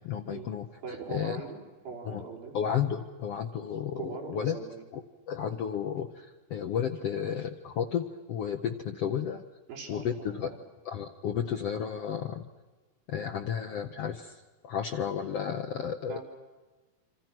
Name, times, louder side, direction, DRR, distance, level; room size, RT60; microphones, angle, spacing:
voice 1, 0.0-0.7 1.1-1.4 2.1-2.2 2.5-4.6 4.9-9.4 9.9-10.5 10.8-12.4 13.1-16.2, left 8 dB, 75° left, 5 dB, 1.4 m, -32 dB
voice 2, 0.8-2.5 4.0-4.8 9.7-10.6 16.1-16.2, right 5 dB, 75° right, -1 dB, 6.4 m, -41 dB
28.0 x 25.5 x 6.1 m, 1.2 s
omnidirectional pair, 4.2 m